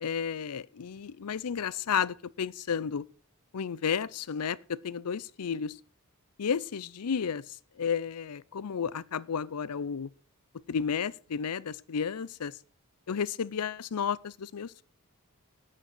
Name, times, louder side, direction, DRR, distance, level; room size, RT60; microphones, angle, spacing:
voice 1, 0.0-3.0 3.5-5.8 6.4-10.1 10.7-12.5 13.1-14.8, left 7 dB, 85° left, 0.5 m, -32 dB
9.9 x 8.6 x 6.1 m
head